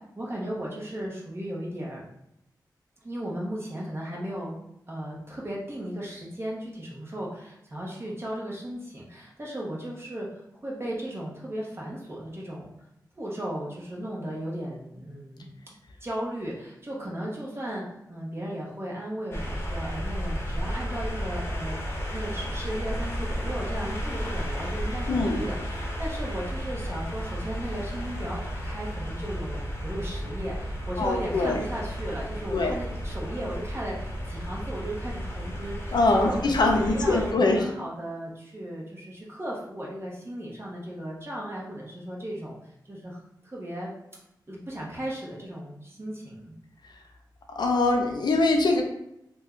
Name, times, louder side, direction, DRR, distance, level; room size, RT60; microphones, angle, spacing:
voice 1, 0.1-2.0 3.0-4.5 4.9-10.3 10.6-12.7 13.2-15.7 16.0-21.8 22.1-36.5 36.8-42.6 42.9-43.9 44.5-46.5, right 1 dB, 35° right, -4 dB, 1.0 m, -36 dB
sound 1, 19.3-37.3, equal, 30° left, 0.9 m, -33 dB
voice 2, 25.1-25.4 31.0-31.6 32.5-32.7 35.9-37.6 47.6-48.8, left 2 dB, 70° left, 2 dB, 0.5 m, -23 dB
2.8 x 2.2 x 3.7 m, 0.81 s
cardioid pair, 60°, 8 cm